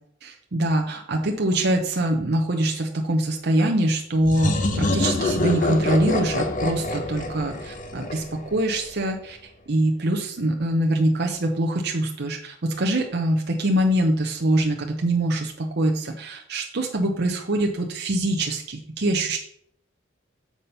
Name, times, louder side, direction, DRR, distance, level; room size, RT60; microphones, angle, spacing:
voice 1, 0.2-9.4 9.7-19.4, right 1 dB, 55° right, 2 dB, 0.8 m, -24 dB
sound 1, 4.2-8.8, left 2 dB, 40° left, 0.8 m, -26 dB
7.1 x 4.2 x 5.5 m, 0.64 s
head